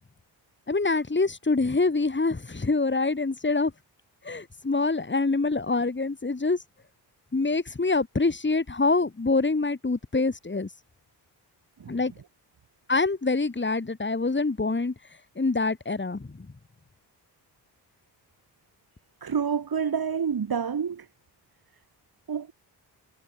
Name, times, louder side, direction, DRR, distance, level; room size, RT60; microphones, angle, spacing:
voice 1, 0.7-3.7 4.2-6.6 7.3-10.7 11.9-12.1 12.9-14.9 15.3-16.5, left 3 dB, 25° left, 5.0 m, -25 dB
voice 2, 19.2-21.1 22.3-22.5, right 7 dB, 55° right, 5.2 m, -28 dB
cardioid pair, 65°, 43 cm